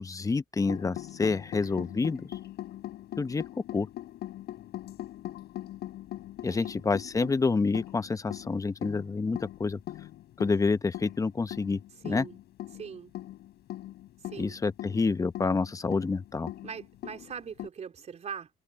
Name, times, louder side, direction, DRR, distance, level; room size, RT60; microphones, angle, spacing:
voice 1, 0.0-2.3 3.2-3.4 3.7-3.9 6.4-9.8 10.4-12.3 14.4-16.5, left 4 dB, 20° left, 0.8 m, -28 dB
sound 1, 0.7-17.7, left 14 dB, 75° left, 6.7 m, -41 dB
voice 2, 6.4-6.7 12.0-12.4 12.7-13.1 14.2-14.6 16.6-18.5, right 7 dB, 40° right, 4.1 m, -41 dB
cardioid pair, 110°, 17 cm